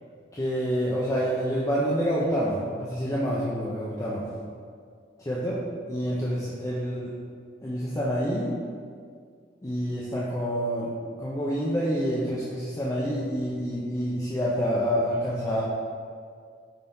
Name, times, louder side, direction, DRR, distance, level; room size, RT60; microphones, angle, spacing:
voice 1, 0.3-4.2 5.2-5.6 5.9-7.1 7.6-8.6 9.6-10.9 11.2-15.6, equal, 20° left, -7 dB, 0.6 m, -27 dB
5.3 x 4.0 x 4.4 m, 2.1 s
head